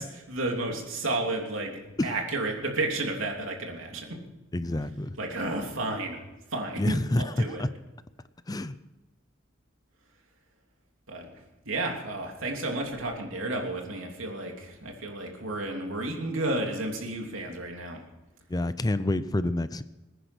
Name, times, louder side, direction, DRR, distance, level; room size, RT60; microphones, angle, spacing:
voice 1, 0.0-1.7 2.0-4.2 5.2-6.2 6.5-7.6 11.1-11.3 11.6-18.0, right 2 dB, 80° right, 1 dB, 3.1 m, -32 dB
voice 2, 4.5-5.2 6.8-7.3 7.6-7.7 8.5-8.8 18.5-19.8, left 1 dB, 20° left, 13 dB, 0.5 m, -28 dB
21.0 x 10.0 x 6.2 m, 1.0 s
head